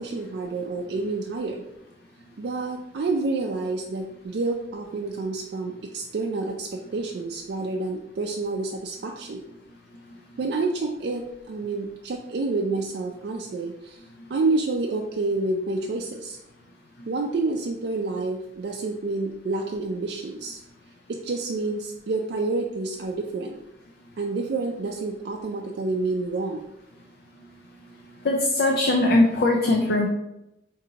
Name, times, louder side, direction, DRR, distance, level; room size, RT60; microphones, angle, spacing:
voice 1, 0.0-1.6 2.4-9.4 10.4-14.0 14.3-16.4 17.1-20.6 21.1-23.6 24.2-26.6, right 3 dB, 65° right, 1 dB, 0.4 m, -28 dB
voice 2, 28.2-30.1, left 2 dB, 60° left, 1 dB, 0.4 m, -20 dB
5.0 x 2.6 x 2.8 m, 0.89 s
head